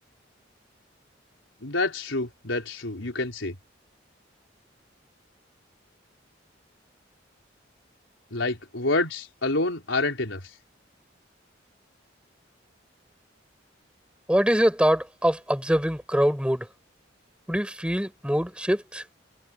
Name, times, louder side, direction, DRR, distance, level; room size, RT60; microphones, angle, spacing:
voice 1, 1.6-3.6 8.3-10.4, left 2 dB, 90° left, 4.3 m, -27 dB
voice 2, 14.3-16.7 17.5-19.0, equal, 5° right, 6.8 m, -24 dB
head